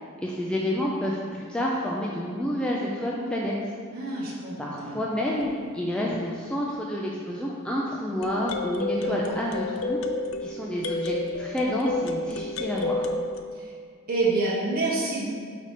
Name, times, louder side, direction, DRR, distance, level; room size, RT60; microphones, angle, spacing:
voice 1, 0.2-3.5 4.6-10.0 10.4-13.1, left 1 dB, 5° left, -4 dB, 0.4 m, -29 dB
voice 2, 3.9-5.0 9.0-9.4 13.5-13.7 14.1-15.3, right 3 dB, 45° right, -6 dB, 1.0 m, -28 dB
sound 1, 5.4-5.5 8.2-13.4, left 2 dB, 70° left, 0.4 m, -30 dB
4.8 x 4.2 x 4.9 m, 2.1 s
head